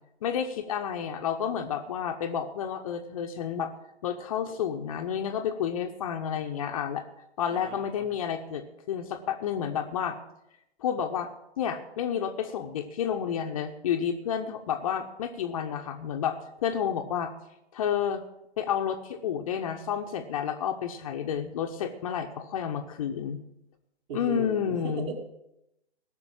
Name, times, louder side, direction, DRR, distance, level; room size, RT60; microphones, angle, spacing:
voice 1, 0.2-3.7 4.0-7.0 7.4-10.2 10.8-11.3 11.6-17.3 17.7-18.2 18.6-23.4 24.1-25.1, left 8 dB, 30° left, 5 dB, 1.0 m, -30 dB
voice 2, 7.5-8.1 24.1-25.1, right 6 dB, 25° right, 5 dB, 2.1 m, -37 dB
17.5 x 6.8 x 8.7 m, 0.84 s
figure-of-eight pair, 130°, 34 cm